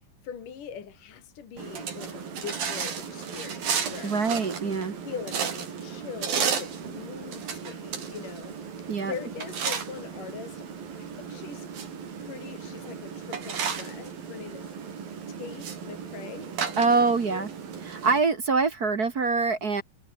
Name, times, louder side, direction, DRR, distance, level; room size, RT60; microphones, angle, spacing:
voice 1, 0.2-4.2 4.6-4.8 5.0-10.7 11.0-11.7 12.2-14.8 15.3-17.5, left 7 dB, 65° left, 4.3 m, -42 dB
sound 1, 1.6-18.2, right 7 dB, 80° right, 5.6 m, -34 dB
voice 2, 4.0-4.9 8.9-9.1 16.8-17.5 17.8-19.8, right 4 dB, 40° right, 1.4 m, -24 dB
omnidirectional pair, 4.1 m